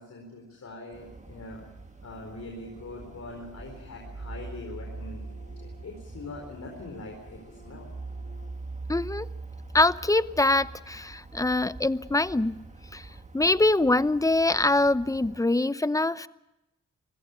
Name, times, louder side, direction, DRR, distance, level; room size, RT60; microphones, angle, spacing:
voice 1, 0.0-1.6 2.0-7.9, left 2 dB, 60° left, 1 dB, 4.4 m, -43 dB
sound 1, 0.9-15.4, right 3 dB, 25° right, 2.0 m, -43 dB
sound 2, 2.8-8.5, left 1 dB, 35° left, 7.1 m, -54 dB
voice 2, 8.9-9.3 9.7-12.6 12.9-13.1 13.3-16.3, left 2 dB, 10° left, 16 dB, 0.7 m, -24 dB
25.0 x 16.5 x 8.1 m, 0.91 s
cardioid pair, 70°, 31 cm